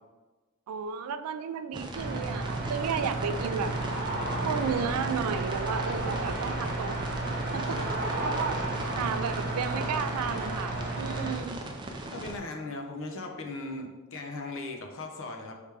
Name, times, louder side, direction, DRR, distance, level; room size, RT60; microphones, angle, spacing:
voice 1, 0.7-3.7 4.4-7.0 7.5-7.8 8.2-8.6 8.9-11.6, right 7 dB, 80° right, 11 dB, 0.3 m, -33 dB
sound 1, 1.7-12.4, right 1 dB, 20° right, 0.5 m, -39 dB
sound 2, 1.9-11.4, right 2 dB, 50° right, 1.0 m, -32 dB
voice 2, 11.0-11.5 12.1-15.5, left 2 dB, 60° left, 3 dB, 0.7 m, -38 dB
4.8 x 3.2 x 3.4 m, 1.3 s
head